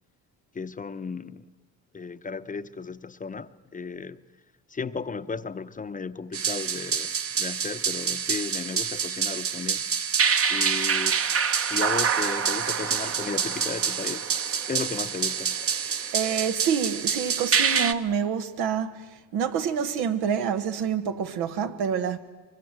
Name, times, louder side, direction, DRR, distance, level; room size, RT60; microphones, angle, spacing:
voice 1, 0.5-1.5 1.9-4.2 4.7-9.9 10.5-11.2 11.7-14.3 14.7-15.7, left 5 dB, 20° left, 0.7 m, -35 dB
sound 1, 6.3-17.9, right 6 dB, 40° right, 1.0 m, -26 dB
voice 2, 16.1-22.2, right 7 dB, 90° right, 1.5 m, -27 dB
23.5 x 23.0 x 7.7 m
cardioid pair, 110°, 37 cm